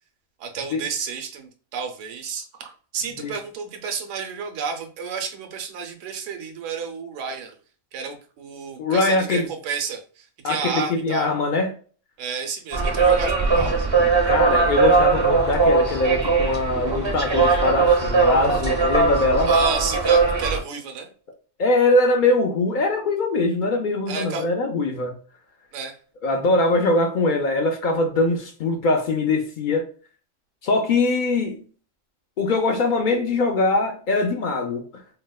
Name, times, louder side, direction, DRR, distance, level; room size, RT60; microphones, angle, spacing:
voice 1, 0.4-7.5 7.9-11.3 12.2-13.8 19.5-21.1 24.1-24.5 25.7-26.0, right 5 dB, 75° right, 0.9 m, -31 dB
voice 2, 8.8-9.5 10.4-11.7 14.3-19.5 21.6-25.1 26.2-29.9 30.6-31.6 32.4-34.9, left 2 dB, 70° left, 0.4 m, -22 dB
sound 1, 12.7-20.6, right 4 dB, 30° right, 0.5 m, -19 dB
4.1 x 2.1 x 2.2 m
omnidirectional pair, 1.3 m